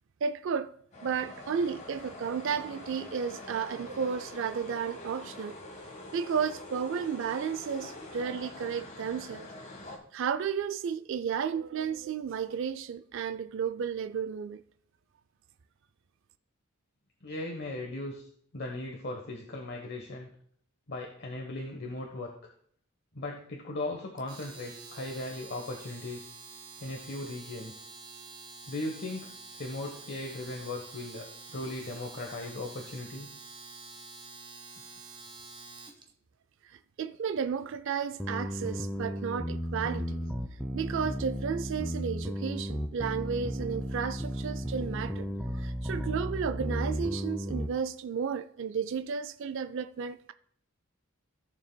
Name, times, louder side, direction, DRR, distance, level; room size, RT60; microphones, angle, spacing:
voice 1, 0.2-0.7 1.0-5.6 6.1-9.5 10.1-14.6 36.7-40.3 40.7-45.3 45.5-50.3, right 6 dB, 60° right, 0.3 m, -33 dB
sound 1, 0.9-10.0, left 2 dB, 35° left, 1.5 m, -45 dB
voice 2, 17.2-18.3 18.5-20.3 20.9-22.3 23.1-26.3 26.8-27.8 28.7-29.3 29.6-33.3, left 2 dB, 50° left, 1.1 m, -38 dB
Domestic sounds home sounds, 24.2-36.0, right 4 dB, 25° right, 1.0 m, -48 dB
sound 2, 38.2-47.7, equal, ahead, 0.6 m, -34 dB
14.5 x 6.9 x 2.2 m
head